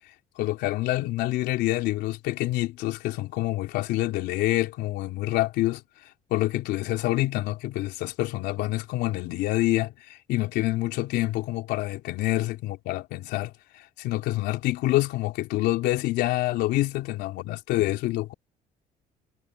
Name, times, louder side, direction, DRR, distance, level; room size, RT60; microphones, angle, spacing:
voice 1, 0.4-5.8 6.3-9.9 10.3-13.5 14.0-18.3, left 17 dB, 90° left, 3.6 m, -27 dB
cardioid pair, 110°, 17 cm